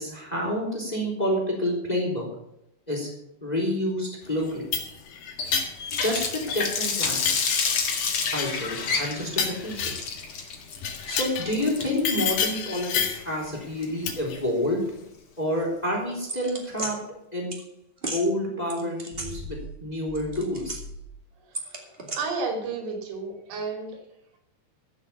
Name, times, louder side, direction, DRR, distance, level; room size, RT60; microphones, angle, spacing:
voice 1, 0.0-2.3 2.9-3.1 3.4-4.7 6.0-7.2 8.2-9.9 11.1-14.8 15.4-17.0 17.3-17.5 18.1-20.8, left 1 dB, 10° left, -1 dB, 3.0 m, -28 dB
sound 1, 4.4-6.8 7.0-10.2 10.8-11.5 12.1-13.3 14.1-14.4, left 7 dB, 85° left, 4.1 m, -30 dB
Water tap faucet, 5.4-14.3, left 5 dB, 55° left, 1.5 m, -30 dB
sound 2, 16.3-16.9 17.5-17.6 18.0-18.2 18.7-19.8 20.1-21.1 21.5-22.2, right 1 dB, 20° right, 1.6 m, -35 dB
voice 2, 22.2-24.0, right 4 dB, 85° right, 3 dB, 4.9 m, -31 dB
15.0 x 6.7 x 7.1 m, 0.83 s
omnidirectional pair, 4.6 m